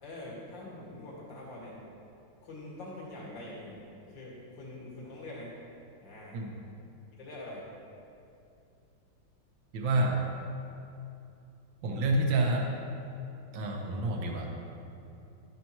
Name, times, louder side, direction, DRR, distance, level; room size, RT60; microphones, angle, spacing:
voice 1, 0.0-1.8 2.4-5.5 6.0-6.4 7.2-7.7, left 1 dB, 70° left, -5 dB, 2.8 m, -44 dB
voice 2, 9.7-10.3 11.8-12.7 13.5-14.5, right 2 dB, 70° right, 1 dB, 1.8 m, -28 dB
13.0 x 11.0 x 3.1 m, 2.6 s
omnidirectional pair, 2.1 m